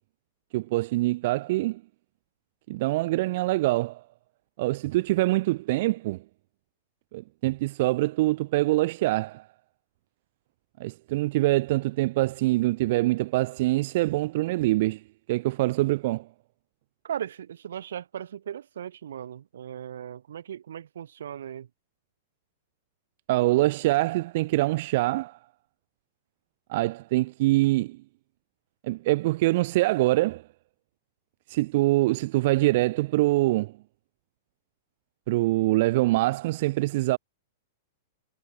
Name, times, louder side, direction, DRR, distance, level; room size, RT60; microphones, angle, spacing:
voice 1, 0.5-1.8 2.7-4.0 4.6-6.2 7.1-9.4 10.8-15.0 15.3-16.3 23.3-25.4 26.7-28.0 28.8-30.4 31.5-33.7 35.3-37.2, right 19 dB, 50° right, 1.1 m, -24 dB
voice 2, 17.0-21.7, right 9 dB, 85° right, 7.0 m, -37 dB
supercardioid pair, 160°, 0 cm